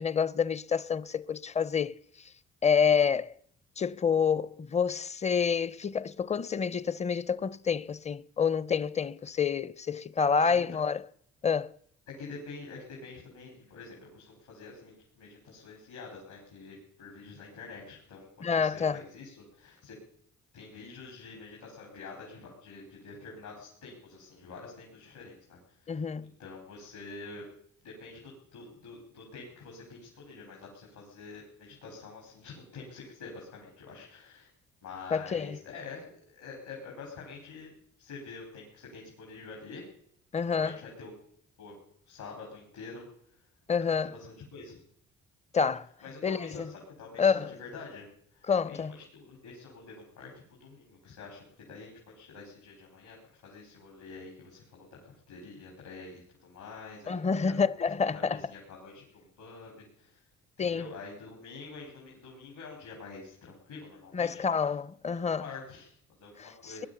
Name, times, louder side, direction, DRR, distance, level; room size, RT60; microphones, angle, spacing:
voice 1, 0.0-2.3 2.6-3.3 3.8-11.0 11.4-11.7 18.4-19.0 25.9-26.3 35.1-35.6 40.3-40.8 43.7-44.1 45.5-45.9 46.2-46.7 47.2-47.5 48.5-48.9 57.1-58.4 60.6-60.9 64.1-65.4 66.4-66.8, left 6 dB, 20° left, 0.5 m, -28 dB
voice 2, 10.4-10.8 12.1-20.0 20.5-26.1 26.4-27.4 27.8-34.5 34.8-36.1 36.3-37.7 38.0-39.9 40.5-41.1 41.6-41.8 42.0-43.4 43.9-44.8 46.0-57.5 58.2-60.2 60.6-64.4 65.0-66.9, left 4 dB, 80° left, 4.8 m, -47 dB
19.0 x 11.0 x 7.0 m
cardioid pair, 90°, 30 cm